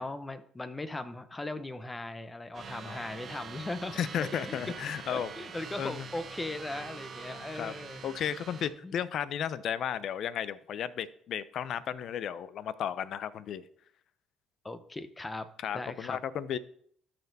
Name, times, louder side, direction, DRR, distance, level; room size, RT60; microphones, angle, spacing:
voice 1, 0.0-8.0 8.8-9.0 14.6-15.5 15.7-16.2, left 2 dB, 20° left, 12 dB, 0.8 m, -39 dB
sound 1, 2.5-8.7, right 6 dB, 50° right, 1.1 m, -44 dB
voice 2, 3.9-5.3 5.8-6.1 7.3-7.7 8.0-13.7 15.6-16.6, left 9 dB, 65° left, 16 dB, 0.5 m, -34 dB
12.5 x 4.3 x 4.1 m, 0.63 s
supercardioid pair, 80°, 0 cm